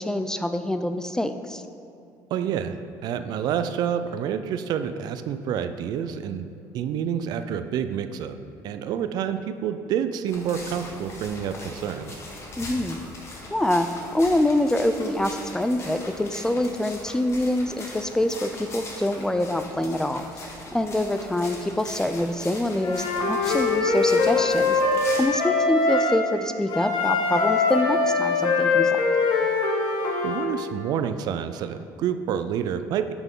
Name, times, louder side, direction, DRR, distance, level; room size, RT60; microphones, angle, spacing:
voice 1, 0.0-1.6 12.6-13.0 13.5-13.9 14.1-20.2 20.7-24.8 25.2-29.0, left 1 dB, 10° left, 9 dB, 0.3 m, -25 dB
voice 2, 2.3-6.5 6.7-8.4 8.6-12.2 30.2-33.1, right 8 dB, 65° right, 10 dB, 0.4 m, -28 dB
sound 1, 10.3-25.2, left 2 dB, 35° left, 1.4 m, -40 dB
Wind instrument woodwind instrument, 22.8-26.2 26.7-30.5, left 3 dB, 65° left, 1.2 m, -22 dB
9.0 x 6.0 x 3.7 m, 2.6 s
cardioid pair, 125°, 8 cm